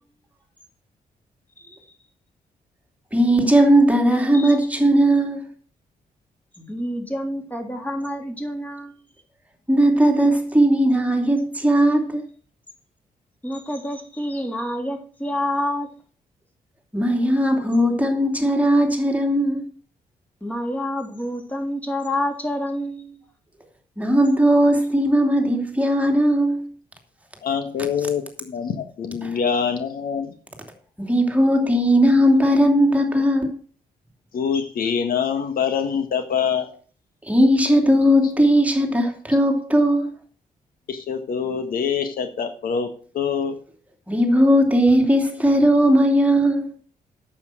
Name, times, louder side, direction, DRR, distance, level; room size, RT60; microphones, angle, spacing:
voice 1, 3.1-5.5 9.7-12.2 16.9-19.7 24.0-26.7 29.2-29.4 31.0-33.6 37.2-40.2 44.1-46.7, equal, 10° right, 2.8 m, -18 dB
voice 2, 6.6-9.0 13.4-15.9 20.4-23.2, left 1 dB, 10° left, 3.6 m, -28 dB
voice 3, 27.4-30.3 34.3-36.7 40.9-42.9 43.1-43.5, left 7 dB, 75° left, 1.6 m, -25 dB
9.2 x 7.6 x 6.4 m
cardioid pair, 75°, 15 cm